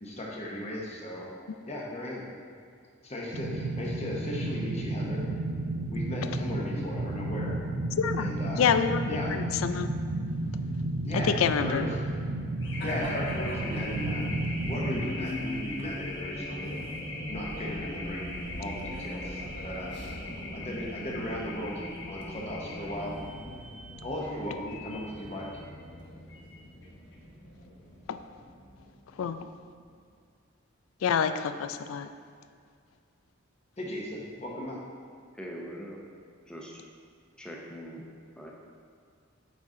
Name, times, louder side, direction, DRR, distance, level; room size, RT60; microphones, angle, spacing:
voice 1, 0.0-1.3 1.7-2.2 3.0-5.3 5.9-7.6 8.1-8.8 9.1-9.4 11.0-12.0 12.8-14.3 14.7-16.7 17.3-20.0 20.5-23.2 24.0-25.5 33.8-34.8, left 1 dB, 30° left, -3 dB, 0.9 m, -37 dB
sound 1, 3.3-15.0, right 2 dB, 65° right, 0.6 m, -32 dB
voice 2, 8.0-8.3 8.6-9.9 11.1-11.8 28.1-28.2 29.2-29.4 31.0-32.1, left 7 dB, 85° left, 10 dB, 0.3 m, -27 dB
Race car auto racing / Alarm, 12.6-29.6, left 1 dB, 60° left, 1.0 m, -39 dB
voice 3, 35.3-36.0 36.4-36.8 37.4-38.1 38.4-38.5, equal, 5° left, -2 dB, 0.7 m, -42 dB
8.4 x 4.1 x 3.7 m, 2.1 s
head